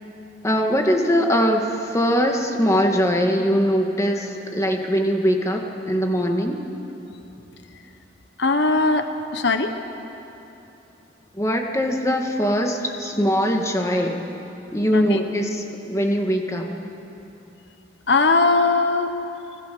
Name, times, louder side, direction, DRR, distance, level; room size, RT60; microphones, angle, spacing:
voice 1, 0.4-6.6 11.3-14.2 14.7-16.7, equal, 15° left, 2 dB, 1.9 m, -21 dB
voice 2, 8.4-9.7 14.9-15.2 18.1-19.1, left 3 dB, 70° left, 7 dB, 1.1 m, -20 dB
30.0 x 21.0 x 7.0 m, 3.0 s
head